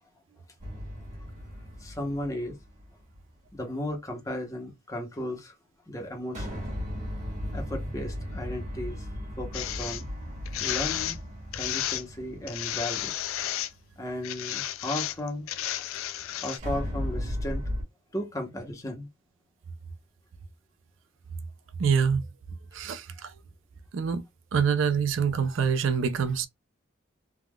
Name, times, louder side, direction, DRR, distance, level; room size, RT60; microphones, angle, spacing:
sound 1, 0.6-3.2 6.3-13.6 16.6-17.8, equal, 35° right, 1.4 m, -36 dB
voice 1, 1.8-2.5 3.5-5.5 5.9-6.6 7.5-9.1 9.4-10.1 10.6-11.2 11.5-13.1 14.0-15.5 16.4-17.6 18.1-19.1, left 1 dB, 15° left, 0.8 m, -35 dB
sound 2, 9.5-10.0 10.5-11.2 11.5-12.0 12.5-13.7 14.2-16.6, left 12 dB, 85° left, 0.4 m, -32 dB
voice 2, 21.8-22.3 22.7-23.3 23.9-24.2 24.5-26.5, right 6 dB, 65° right, 0.4 m, -25 dB
3.4 x 2.2 x 2.2 m
head